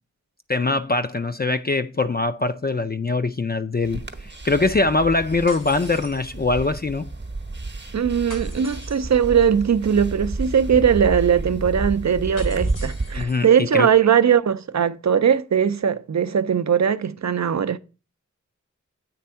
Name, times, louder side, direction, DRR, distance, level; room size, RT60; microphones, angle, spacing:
voice 1, 0.5-7.1 13.1-13.5 13.7-13.9, left 3 dB, 30° left, 0.4 m, -22 dB
Szpacza matka przegania intruza, 3.8-13.2, right 2 dB, 35° right, 0.8 m, -31 dB
sound 1, 5.5-6.8 8.3-9.3 12.4-13.5, left 2 dB, 85° left, 1.9 m, -43 dB
voice 2, 7.9-17.8, right 8 dB, 65° right, 0.5 m, -20 dB
8.6 x 3.4 x 5.5 m
wide cardioid pair, 45°, 30 cm